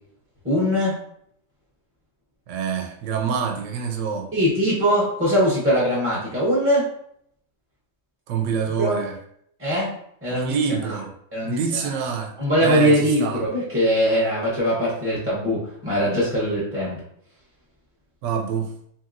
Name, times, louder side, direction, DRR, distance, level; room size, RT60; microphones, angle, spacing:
voice 1, 0.4-1.0 4.3-6.9 8.8-9.0 9.6-9.9 10.2-10.5 10.8-11.0 11.3-11.9 12.4-17.0, equal, 15° right, 0.5 m, -21 dB
voice 2, 2.5-4.3 8.3-9.2 10.3-11.1 11.5-12.3 12.6-13.4 18.2-18.7, right 6 dB, 70° right, 0.8 m, -26 dB
2.9 x 2.7 x 2.5 m
omnidirectional pair, 1.4 m